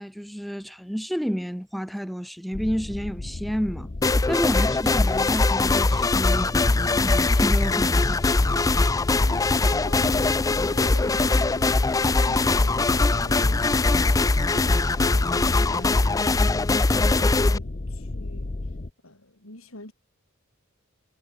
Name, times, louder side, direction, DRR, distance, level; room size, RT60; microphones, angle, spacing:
voice 1, 0.0-8.6, equal, ahead, 1.1 m, -30 dB
sound 1, 2.5-18.9, left 2 dB, 40° left, 0.8 m, -34 dB
sound 2, 4.0-17.6, left 3 dB, 15° left, 0.4 m, -21 dB
voice 2, 9.2-14.1 14.5-18.6 19.0-19.9, left 1 dB, 80° left, 6.2 m, -44 dB
head